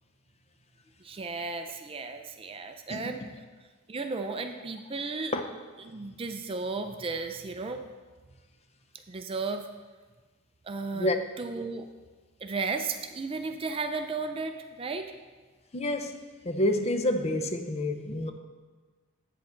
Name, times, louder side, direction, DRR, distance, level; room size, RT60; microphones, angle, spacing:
voice 1, 1.0-3.2 3.9-5.3 5.8-7.8 9.1-9.7 10.6-11.1 11.4-11.9 12.4-15.1, right 4 dB, 25° right, 0.4 m, -34 dB
voice 2, 2.9-3.3 5.3-5.4 10.9-11.2 15.7-18.3, left 1 dB, 30° left, 0.5 m, -29 dB
8.4 x 8.1 x 3.9 m
head